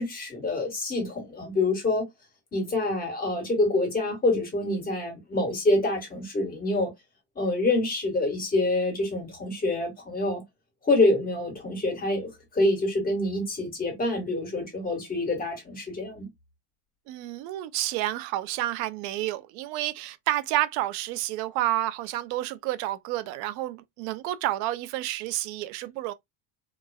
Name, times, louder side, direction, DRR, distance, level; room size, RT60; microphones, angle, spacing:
voice 1, 0.0-2.0 2.5-6.9 7.3-10.4 10.8-16.3, left 2 dB, 20° left, 1.5 m, -26 dB
voice 2, 17.1-26.1, right 15 dB, 90° right, 0.5 m, -30 dB
2.9 x 2.3 x 2.2 m
cardioid pair, 135°, 43 cm